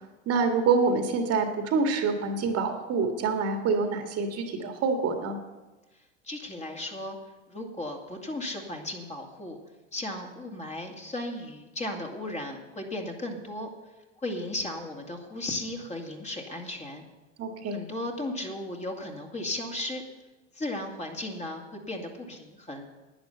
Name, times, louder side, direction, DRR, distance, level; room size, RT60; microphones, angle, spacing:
voice 1, 0.3-5.4 17.4-17.8, right 4 dB, 40° right, 4 dB, 1.9 m, -26 dB
voice 2, 6.2-7.2 7.5-9.6 9.9-13.7 14.2-17.0 17.7-20.0 20.5-22.9, left 1 dB, 20° left, 1 dB, 2.4 m, -35 dB
11.5 x 9.8 x 6.8 m, 1.1 s
hypercardioid pair, 90°, 38 cm